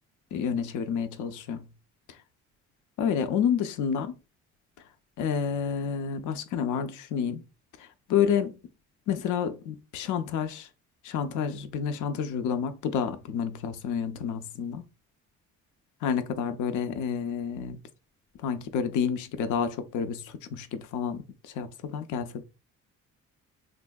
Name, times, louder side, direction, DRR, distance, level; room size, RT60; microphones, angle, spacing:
voice 1, 0.3-1.6 3.0-4.2 5.2-7.4 7.8-8.6 9.1-10.7 11.0-14.9 16.0-17.8 18.4-22.4, left 7 dB, 80° left, 0.5 m, -29 dB
3.5 x 2.6 x 2.2 m
cardioid pair, 90°, 30 cm